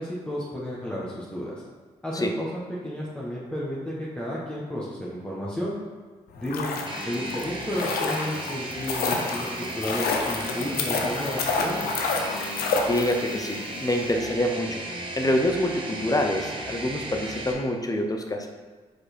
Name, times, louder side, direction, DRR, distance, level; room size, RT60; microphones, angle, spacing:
voice 1, 0.0-1.6 2.0-2.5 2.8-5.7 6.4-6.7 7.0-12.0, equal, 5° left, -7 dB, 1.5 m, -32 dB
sound 1, 6.3-13.5 13.7-13.8, left 4 dB, 75° left, 0.7 m, -29 dB
sound 2, 6.9-17.5, right 1 dB, 30° right, 1.4 m, -35 dB
voice 2, 12.9-14.8 15.2-18.5, left 1 dB, 25° left, 3 dB, 0.9 m, -26 dB
4.7 x 4.7 x 4.5 m, 1.4 s
hypercardioid pair, 40°, 16 cm